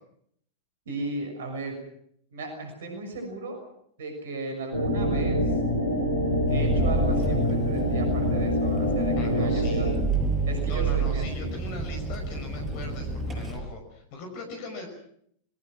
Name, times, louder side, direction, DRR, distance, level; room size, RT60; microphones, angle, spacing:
voice 1, 0.9-1.8 2.3-3.6 4.0-5.4 6.5-9.9 10.5-11.5, right 2 dB, 60° right, 6 dB, 6.4 m, -35 dB
sound 1, 4.7-9.9, equal, 85° right, 5.4 m, -25 dB
Engine, 6.5-13.6, right 3 dB, 20° right, 7.2 m, -29 dB
voice 2, 9.2-10.0 10.7-14.9, left 3 dB, 45° left, 4 dB, 5.4 m, -40 dB
26.5 x 22.0 x 6.2 m, 0.69 s
figure-of-eight pair, 90°, 0 cm